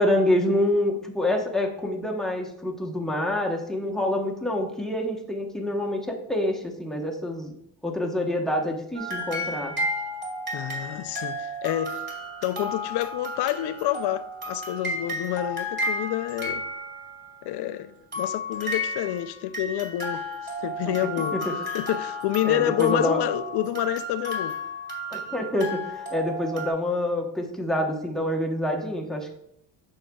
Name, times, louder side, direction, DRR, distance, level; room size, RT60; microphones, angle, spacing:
voice 1, 0.0-7.6 7.8-9.7 20.9-21.0 21.3-21.5 22.4-23.2 25.1-29.4, left 1 dB, ahead, 1.0 m, -26 dB
sound 1, 8.9-17.3 18.1-26.7, left 1 dB, 25° right, 2.3 m, -32 dB
voice 2, 10.5-12.0 12.4-16.6 17.4-21.4 21.7-24.6, left 13 dB, 65° left, 0.6 m, -28 dB
8.7 x 6.5 x 2.3 m
cardioid pair, 125°, 43 cm